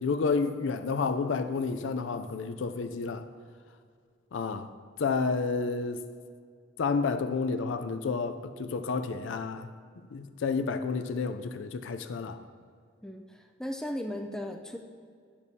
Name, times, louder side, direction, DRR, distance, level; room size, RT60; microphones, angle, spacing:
voice 1, 0.0-3.3 4.3-4.7 5.0-6.0 6.8-9.7 10.1-12.4, left 4 dB, 80° left, 0.4 m, -30 dB
voice 2, 13.0-14.8, left 1 dB, 5° left, 0.3 m, -36 dB
10.0 x 7.0 x 2.7 m
head